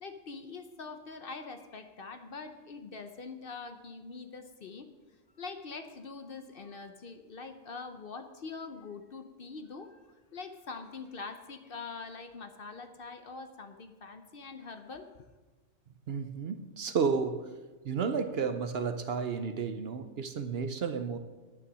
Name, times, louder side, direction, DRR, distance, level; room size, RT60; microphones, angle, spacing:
voice 1, 0.0-4.9 5.4-10.0 10.3-15.1, left 4 dB, 50° left, 8 dB, 0.9 m, -44 dB
voice 2, 16.1-17.6 17.8-21.2, right 5 dB, 60° right, 9 dB, 0.8 m, -32 dB
9.8 x 9.7 x 6.1 m, 1.2 s
omnidirectional pair, 1.3 m